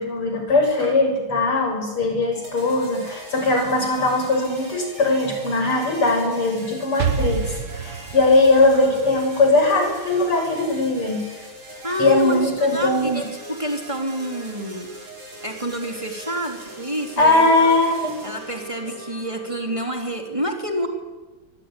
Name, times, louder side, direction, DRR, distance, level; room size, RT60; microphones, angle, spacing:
voice 1, 0.0-11.3 12.0-13.2 17.2-18.2, left 2 dB, 85° left, 4 dB, 7.6 m, -20 dB
sound 1, 2.3-20.3, right 2 dB, 80° right, 7.1 m, -41 dB
Explosion, 7.0-10.8, right 6 dB, 45° right, 1.1 m, -29 dB
voice 2, 11.8-14.9 15.4-17.8 18.2-20.9, right 1 dB, 15° right, 3 dB, 3.5 m, -28 dB
25.5 x 22.5 x 9.9 m, 1.2 s
omnidirectional pair, 2.4 m